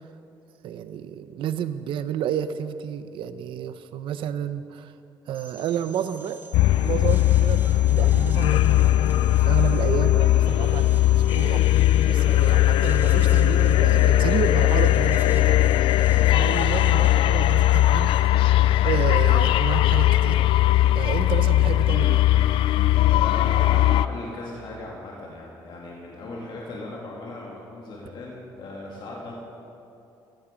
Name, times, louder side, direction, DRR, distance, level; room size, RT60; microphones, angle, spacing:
voice 1, 0.6-4.9 5.3-6.4 6.8-11.8 12.1-15.7 16.3-18.1 18.8-20.7 20.9-22.2, right 9 dB, 75° right, 12 dB, 0.8 m, -31 dB
sound 1, 5.4-18.2, right 4 dB, 25° right, 2.3 m, -46 dB
sound 2, 6.5-24.1, left 14 dB, 80° left, 0.4 m, -19 dB
voice 2, 23.0-29.3, left 2 dB, 60° left, -3 dB, 2.5 m, -37 dB
17.0 x 13.5 x 5.2 m, 2.7 s
cardioid pair, 115°, 9 cm